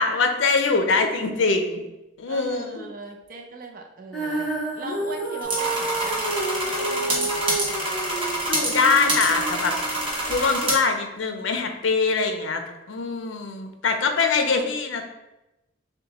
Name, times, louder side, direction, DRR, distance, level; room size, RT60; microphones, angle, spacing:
voice 1, 0.0-1.8 2.2-2.9 8.5-9.7 10.3-12.6 12.9-15.0, left 4 dB, 75° left, 5 dB, 0.5 m, -23 dB
voice 2, 2.2-7.9, right 3 dB, 45° right, 2 dB, 0.5 m, -39 dB
Female singing, 4.1-10.3, right 2 dB, ahead, 1.1 m, -30 dB
sound 1, 5.4-10.7, right 1 dB, 25° right, 0.9 m, -27 dB
6.4 x 2.2 x 2.9 m, 0.96 s
head